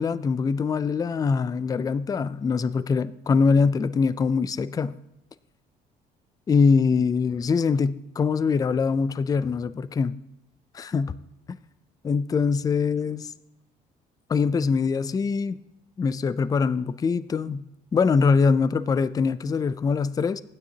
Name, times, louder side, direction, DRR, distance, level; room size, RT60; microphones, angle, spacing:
voice 1, 0.0-5.0 6.5-10.2 10.7-11.1 11.5-11.6 12.0-13.3 14.3-15.6 16.0-20.4, left 5 dB, 20° left, 0.4 m, -23 dB
16.0 x 9.5 x 2.8 m
cardioid pair, 110°, 17 cm